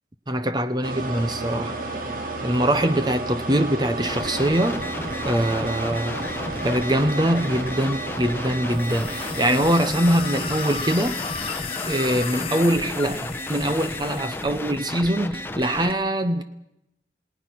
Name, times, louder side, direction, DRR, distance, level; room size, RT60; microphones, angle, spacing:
voice 1, 0.3-1.8 2.4-4.8 5.2-6.2 6.6-11.2 11.9-16.4, right 1 dB, 25° right, 0.9 m, -23 dB
sound 1, 0.8-12.0, right 2 dB, 50° right, 2.9 m, -33 dB
sound 2, 4.0-15.9, left 1 dB, 10° left, 1.0 m, -33 dB
sound 3, 8.7-14.7, left 6 dB, 30° left, 1.5 m, -34 dB
28.5 x 18.5 x 6.0 m
head